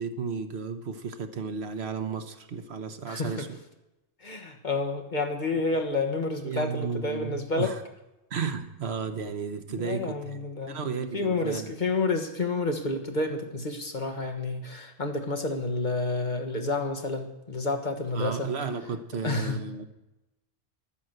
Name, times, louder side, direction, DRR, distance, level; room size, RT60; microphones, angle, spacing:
voice 1, 0.0-3.6 5.7-5.8 6.4-7.8 8.3-11.8 18.1-19.8, right 5 dB, 70° right, 8 dB, 1.3 m, -34 dB
voice 2, 3.1-3.5 4.2-7.7 9.7-10.8 11.1-18.5 19.2-19.6, left 3 dB, 40° left, 4 dB, 1.5 m, -29 dB
11.5 x 9.8 x 7.9 m, 0.95 s
omnidirectional pair, 1.2 m